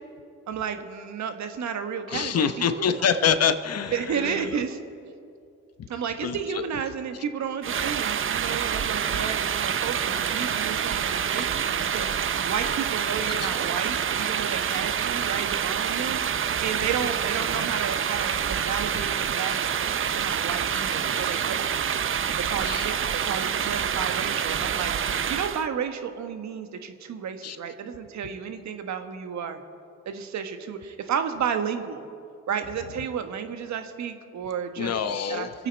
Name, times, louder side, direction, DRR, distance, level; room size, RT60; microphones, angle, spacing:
voice 1, 0.5-3.1 3.9-4.8 5.9-21.9 22.4-29.6 30.0-32.1 32.5-34.9 35.3-35.7, right 7 dB, 65° right, 7 dB, 1.4 m, -32 dB
voice 2, 2.1-4.6 5.8-5.9 6.2-6.6 13.4-13.5 22.6-22.9 27.4-27.6 34.8-35.5, left 7 dB, 55° left, 11 dB, 1.0 m, -26 dB
sound 1, 7.6-25.7, right 8 dB, 40° right, 0.7 m, -27 dB
26.0 x 8.9 x 4.6 m, 2.5 s
supercardioid pair, 65°, 30 cm